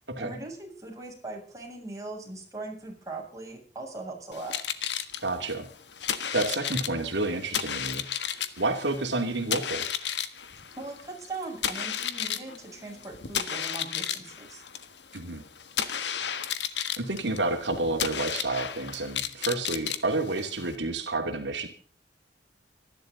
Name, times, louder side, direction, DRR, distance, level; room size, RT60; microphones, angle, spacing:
voice 1, 0.2-4.6 10.8-14.6, right 2 dB, 20° right, -1 dB, 7.3 m, -40 dB
sound 1, 4.3-20.8, left 9 dB, 75° left, 1.6 m, -33 dB
voice 2, 5.2-5.7 6.3-8.1 8.6-9.9 15.1-15.4 17.0-21.7, right 2 dB, 85° right, 4 dB, 2.6 m, -29 dB
25.5 x 11.5 x 3.9 m, 0.42 s
head